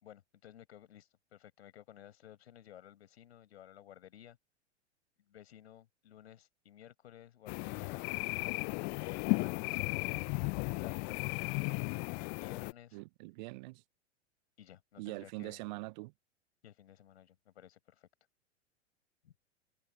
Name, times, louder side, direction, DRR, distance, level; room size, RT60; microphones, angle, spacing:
voice 1, 0.0-4.4 5.3-8.1 8.9-10.4 10.8-11.8 12.2-13.0 14.6-15.6 16.6-18.1 19.2-19.3, left 11 dB, 60° left, 5.5 m, -55 dB
sound 1, 7.5-12.7, left 37 dB, 30° left, 0.6 m, -35 dB
voice 2, 12.9-13.8 15.0-16.1, right 24 dB, 40° right, 0.8 m, -43 dB
figure-of-eight pair, 100°, 36 cm